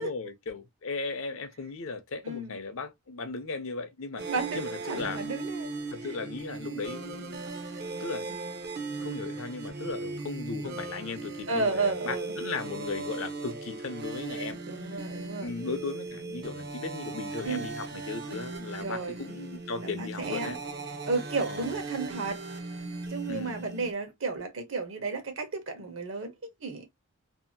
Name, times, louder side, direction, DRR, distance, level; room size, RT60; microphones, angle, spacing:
voice 1, 0.0-4.2 4.5-5.2 5.9-7.5 8.0-8.4 9.0-14.6 15.4-20.6 21.5-21.8 23.3-23.6, left 4 dB, 70° left, 0.6 m, -37 dB
sound 1, 4.2-23.9, right 3 dB, 50° right, 0.5 m, -38 dB
voice 2, 4.2-5.7 6.0-6.1 6.7-6.8 11.5-12.4 14.7-15.5 17.4-17.7 18.8-19.2 19.8-20.6 21.1-22.4 23.1-26.3 26.6-26.9, right 3 dB, 65° right, 0.9 m, -32 dB
2.7 x 2.4 x 2.6 m
head